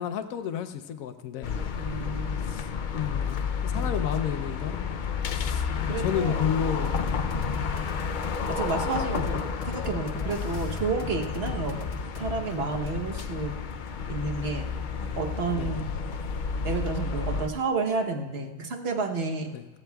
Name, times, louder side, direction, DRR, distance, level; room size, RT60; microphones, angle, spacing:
voice 1, 0.0-1.6 2.4-2.7 2.9-4.8 5.3-7.2 11.5-11.6 15.6-15.7 19.5-19.7, left 9 dB, 80° left, 8 dB, 1.1 m, -32 dB
sound 1, 1.4-17.5, left 5 dB, 65° left, 0.4 m, -31 dB
voice 2, 1.7-2.5 3.7-4.0 5.9-6.5 7.2-7.7 8.5-9.4 9.7-11.8 12.2-13.6 14.1-14.7 15.2-15.9 16.6-19.5, right 4 dB, 50° right, 3 dB, 1.2 m, -31 dB
sound 2, 6.8-12.3, left 3 dB, 35° left, 1.3 m, -38 dB
18.5 x 15.0 x 2.3 m, 1.3 s
omnidirectional pair, 1.4 m